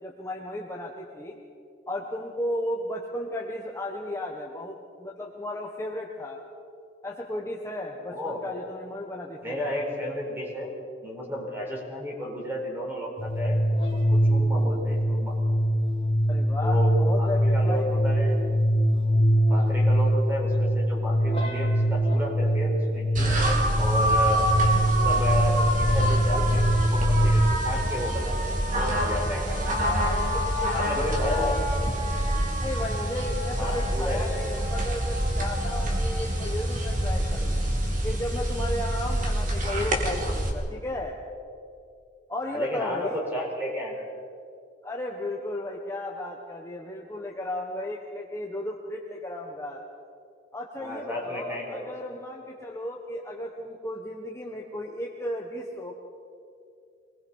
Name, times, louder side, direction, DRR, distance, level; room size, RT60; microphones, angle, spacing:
voice 1, 0.0-1.4 1.9-6.4 7.0-9.6 16.3-17.9 29.4-31.6 32.6-37.6 38.0-41.2 42.3-43.2 44.8-49.8 50.5-55.9, left 1 dB, 15° left, -1 dB, 1.3 m, -34 dB
voice 2, 8.1-8.4 9.4-10.7 11.0-13.6 13.9-15.3 16.6-18.3 19.5-23.4 23.8-24.4 25.0-29.7 30.7-31.6 33.6-34.3 42.5-44.0 50.8-51.9, equal, 10° right, -1 dB, 4.6 m, -32 dB
sound 1, 13.2-27.3, equal, 30° left, 2.5 m, -23 dB
sound 2, 23.1-40.5, right 1 dB, 45° right, 2.9 m, -26 dB
24.5 x 20.0 x 5.6 m, 2.4 s
head